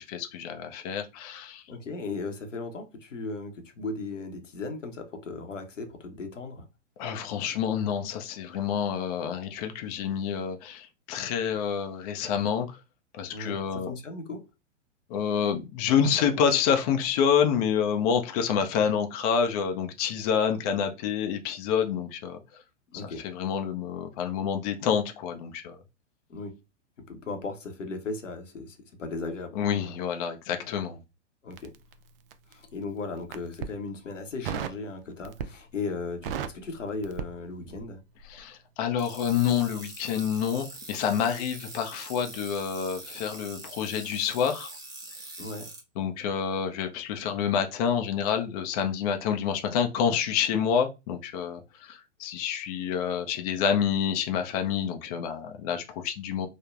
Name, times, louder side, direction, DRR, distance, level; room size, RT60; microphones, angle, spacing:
voice 1, 0.0-1.6 7.0-12.8 13.1-13.9 15.1-22.4 23.2-25.8 29.6-31.0 38.3-44.7 46.0-56.5, left 7 dB, 35° left, 0.4 m, -28 dB
voice 2, 1.7-6.7 13.3-14.5 22.9-23.3 26.3-26.6 27.0-29.7 31.4-31.7 32.5-38.0 45.4-45.7, left 3 dB, 90° left, 0.8 m, -37 dB
Crackle, 31.5-32.6 33.2-33.8 34.4-34.8 35.2-35.7 36.0-37.9 38.2-38.4, right 8 dB, 50° right, 0.4 m, -35 dB
sound 1, 39.0-45.8, right 2 dB, 10° right, 0.7 m, -43 dB
3.1 x 2.0 x 2.3 m
hypercardioid pair, 110°, 36 cm